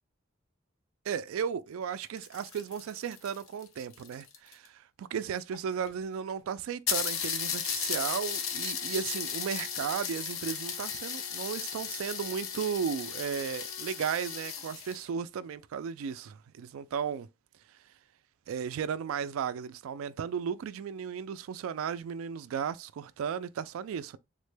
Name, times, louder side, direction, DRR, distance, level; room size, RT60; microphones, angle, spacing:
voice 1, 1.1-17.3 18.5-24.2, right 7 dB, 85° right, 0.3 m, -35 dB
sound 1, 1.9-4.7 5.5-5.6 5.9-6.0 6.3-6.4 6.9-15.0, left 7 dB, 85° left, 0.7 m, -35 dB
3.6 x 2.1 x 3.2 m
head